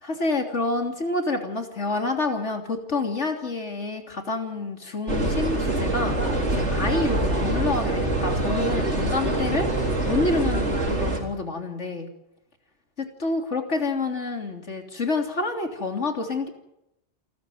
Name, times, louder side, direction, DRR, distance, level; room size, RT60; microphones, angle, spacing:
voice 1, 0.0-6.1 6.5-12.1 13.0-16.5, left 3 dB, 90° left, 4 dB, 3.5 m, -28 dB
sound 1, 5.1-11.2, right 1 dB, 80° right, 4.2 m, -25 dB
sound 2, 6.0-11.0, right 2 dB, 50° left, 3.0 m, -36 dB
28.5 x 14.0 x 9.4 m, 0.87 s
omnidirectional pair, 1.2 m